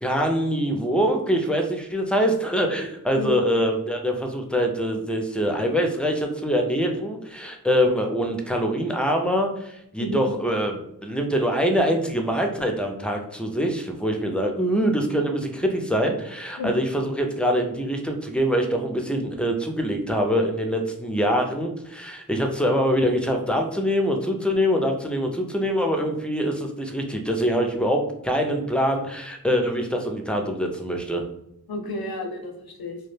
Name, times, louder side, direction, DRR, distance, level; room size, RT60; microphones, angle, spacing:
voice 1, 0.0-31.2, equal, 5° left, 3 dB, 0.4 m, -24 dB
voice 2, 31.7-33.0, left 1 dB, 75° left, 3 dB, 0.5 m, -30 dB
2.2 x 2.1 x 3.2 m, 0.77 s
wide cardioid pair, 40°, 37 cm